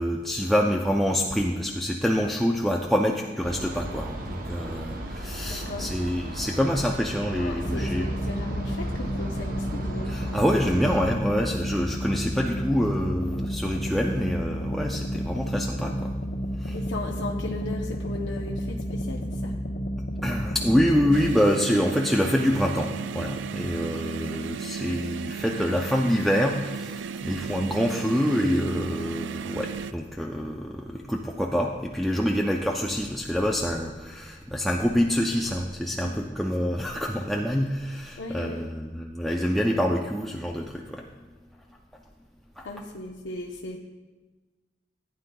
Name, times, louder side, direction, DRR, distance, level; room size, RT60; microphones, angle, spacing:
voice 1, 0.0-8.1 10.0-16.1 16.6-16.8 20.2-41.1 42.6-42.7, equal, ahead, -1 dB, 0.4 m, -26 dB
sound 1, 3.4-11.2, right 1 dB, 50° right, 0.8 m, -35 dB
voice 2, 5.4-5.9 7.4-10.2 16.7-19.5 23.8-23.9 24.3-24.7 36.0-36.2 38.2-38.7 42.6-43.8, left 2 dB, 90° left, 0 dB, 0.7 m, -37 dB
sound 2, 7.6-21.3, equal, 70° left, 1.1 m, -31 dB
sound 3, 21.1-29.9, right 6 dB, 85° right, 0.3 m, -35 dB
15.5 x 9.4 x 2.3 m, 1.3 s
head